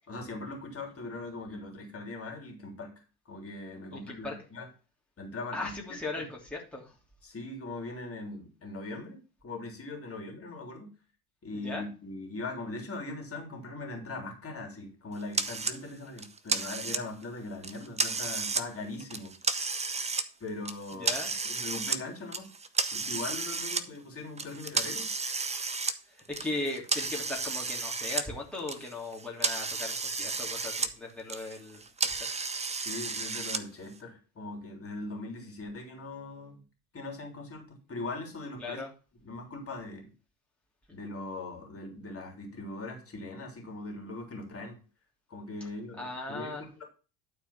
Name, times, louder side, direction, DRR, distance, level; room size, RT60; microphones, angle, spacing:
voice 1, 0.1-2.9 3.2-4.7 5.2-5.7 7.2-10.9 11.4-19.3 20.4-21.2 21.4-22.5 22.9-25.1 32.8-36.6 36.9-38.8 39.2-40.1 40.9-44.8 45.3-46.9, left 2 dB, 30° left, 3.3 m, -40 dB
voice 2, 3.9-4.3 5.5-6.9 11.5-11.8 20.9-21.3 26.1-32.3 38.6-38.9 46.0-46.9, left 2 dB, ahead, 3.0 m, -38 dB
sound 1, 15.3-15.8 16.2-17.2 17.6-18.7 19.0-20.3 20.7-22.0 22.3-23.8 24.4-28.3 28.6-30.9 31.2-33.6, right 4 dB, 15° right, 0.9 m, -32 dB
12.0 x 4.5 x 5.7 m
hypercardioid pair, 75°, 48 cm